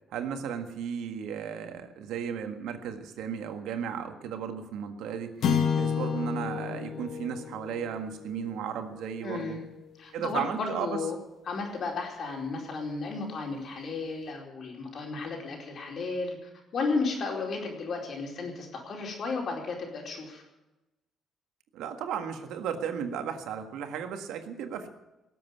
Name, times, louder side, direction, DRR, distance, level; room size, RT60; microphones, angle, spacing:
voice 1, 0.1-5.4 5.7-9.6 10.1-11.0 21.7-24.9, right 7 dB, 90° right, 7 dB, 1.6 m, -35 dB
sound 1, 5.4-9.9, left 7 dB, 70° left, 2.0 m, -31 dB
voice 2, 9.2-9.6 10.0-11.2 11.5-20.4, left 4 dB, 55° left, 1 dB, 4.7 m, -34 dB
18.0 x 7.8 x 9.6 m, 1.0 s
cardioid pair, 90°, 0 cm